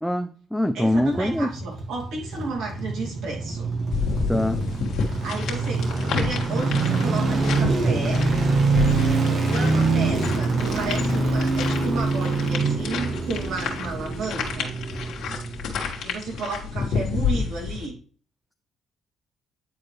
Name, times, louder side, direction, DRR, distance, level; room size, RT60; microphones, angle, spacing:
voice 1, 0.0-1.5 4.3-4.6, left 1 dB, ahead, 8 dB, 0.4 m, -23 dB
voice 2, 0.7-3.7 5.2-5.8 6.1-8.3 9.4-14.7 16.0-18.0, right 3 dB, 80° right, -1 dB, 2.4 m, -33 dB
sound 1, 0.8-16.1 16.3-16.4, right 3 dB, 55° right, 1.9 m, -25 dB
sound 2, 3.9-17.9, left 6 dB, 80° left, 1.7 m, -30 dB
9.4 x 4.3 x 3.2 m, 0.42 s
cardioid pair, 90°, 0 cm